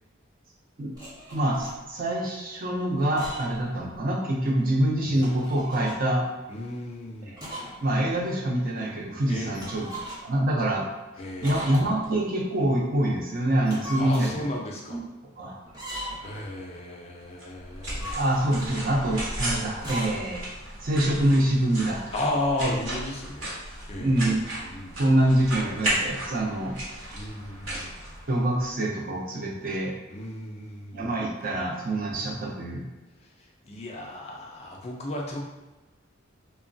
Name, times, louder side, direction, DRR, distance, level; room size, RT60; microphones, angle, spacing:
sound 1, 0.9-1.8 3.0-3.7 4.0-4.1 5.0-6.0 7.4-7.8 8.1-8.2 9.5-10.4 11.4-12.1 13.5-14.4 15.7-16.4 17.7-18.7 19.7-20.2, equal, 20° right, 0.8 m, -38 dB
voice 1, 1.3-6.3 7.3-7.4 7.8-9.9 10.2-10.9 11.4-14.3 14.9-15.0 15.4-15.6 18.1-20.4 20.8-22.1 22.6-22.7 24.0-24.4 25.0-26.8 28.3-29.9 30.9-32.9, right 1 dB, 45° right, -2 dB, 0.5 m, -25 dB
voice 2, 6.5-7.4 9.3-9.7 11.2-11.8 14.0-15.0 16.2-18.2 22.1-24.3 24.7-25.0 27.1-27.9 30.1-31.1 33.6-35.4, left 1 dB, 30° left, -1 dB, 0.3 m, -34 dB
sound 2, 17.4-28.7, right 1 dB, 65° right, 1.1 m, -35 dB
3.0 x 2.2 x 2.5 m, 1.1 s
head